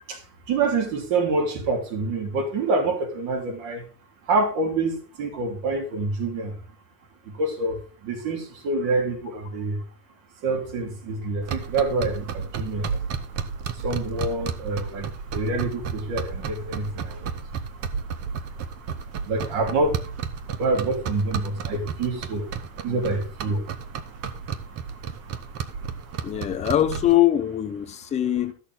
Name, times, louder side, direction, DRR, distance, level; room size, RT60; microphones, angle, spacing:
voice 1, 0.5-3.8 4.3-6.5 7.3-7.7 8.0-9.8 10.4-12.9 13.8-15.1 15.3-17.3 19.3-19.9 20.6-22.4 22.8-23.6, right 3 dB, 55° right, 3.3 m, -26 dB
sound 1, 11.4-27.2, right 6 dB, 30° right, 0.8 m, -33 dB
voice 2, 26.2-28.5, left 13 dB, 15° left, 0.5 m, -22 dB
13.0 x 6.5 x 3.9 m
supercardioid pair, 160°, 49 cm